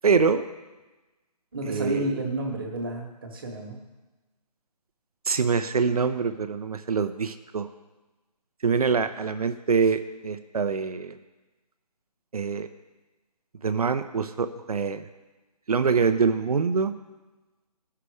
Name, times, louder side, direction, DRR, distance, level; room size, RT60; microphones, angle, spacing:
voice 1, 0.0-0.5 1.6-2.1 5.3-7.7 8.6-11.1 12.3-12.7 13.6-15.1 15.7-16.9, right 5 dB, 65° right, 10 dB, 0.7 m, -24 dB
voice 2, 1.5-3.8, right 2 dB, 35° right, 1 dB, 1.4 m, -31 dB
14.5 x 5.9 x 4.9 m, 1.1 s
hypercardioid pair, 170°, 21 cm